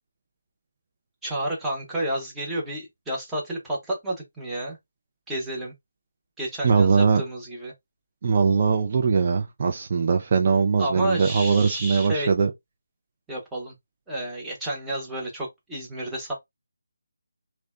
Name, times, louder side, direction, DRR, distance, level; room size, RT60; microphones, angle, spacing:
voice 1, 1.2-4.8 5.3-5.7 6.4-7.7 10.8-12.3 13.3-13.7 14.1-16.3, right 1 dB, 5° right, 0.8 m, -30 dB
voice 2, 6.6-7.2 8.2-12.5, right 5 dB, 35° right, 0.3 m, -21 dB
2.6 x 2.1 x 2.2 m
figure-of-eight pair, 160°, 0 cm